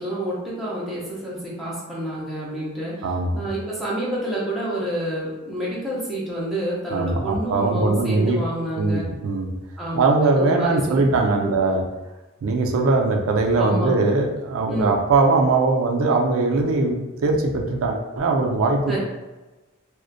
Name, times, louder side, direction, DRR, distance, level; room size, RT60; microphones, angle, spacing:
voice 1, 0.0-3.1 3.3-9.1 9.8-11.1 11.4-11.5 13.6-13.9 14.7-14.9 18.9-19.0, right 1 dB, ahead, -7 dB, 0.5 m, -28 dB
voice 2, 3.0-3.5 6.9-8.4 8.7-9.5 9.9-11.8 12.4-19.0, right 3 dB, 80° right, 2 dB, 0.4 m, -21 dB
2.4 x 2.1 x 2.5 m, 1.1 s
head